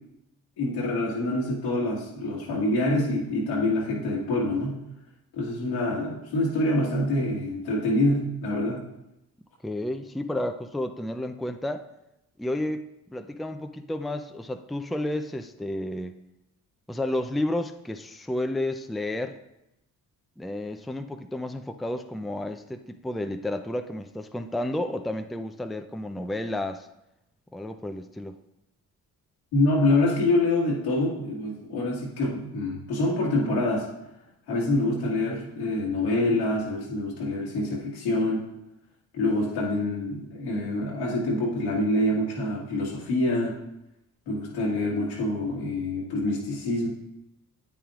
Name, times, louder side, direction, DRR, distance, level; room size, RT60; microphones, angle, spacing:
voice 1, 0.6-4.8 5.4-8.8 29.5-33.9 34.5-38.4 39.1-43.5 44.3-46.9, left 1 dB, 90° left, -3 dB, 1.8 m, -26 dB
voice 2, 9.6-11.8 12.4-12.8 13.1-16.2 16.9-19.4 20.4-26.9 27.5-28.4, left 1 dB, ahead, 7 dB, 0.5 m, -31 dB
8.9 x 7.1 x 2.5 m, 0.88 s
hypercardioid pair, 45°, 40 cm